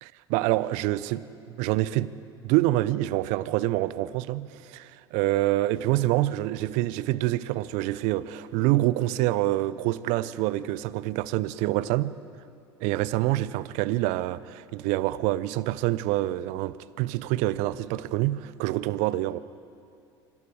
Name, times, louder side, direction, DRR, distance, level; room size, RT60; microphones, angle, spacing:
voice 1, 0.0-1.2 1.6-2.1 2.4-12.2 12.8-19.4, right 16 dB, 55° right, 0.8 m, -26 dB
26.0 x 23.0 x 4.9 m
figure-of-eight pair, 70°, 14 cm